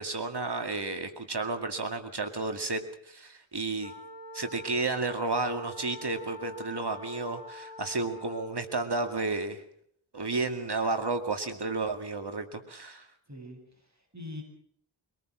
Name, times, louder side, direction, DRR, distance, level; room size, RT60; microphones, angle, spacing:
voice 1, 0.0-3.9 4.3-9.6 10.1-13.1, right 3 dB, 55° right, 7 dB, 2.2 m, -32 dB
sound 1, 3.8-8.7, left 2 dB, 15° right, 6.8 m, -45 dB
voice 2, 13.3-14.4, left 2 dB, 35° right, 3 dB, 7.9 m, -43 dB
25.0 x 19.5 x 6.3 m, 0.67 s
wide cardioid pair, 50°, 48 cm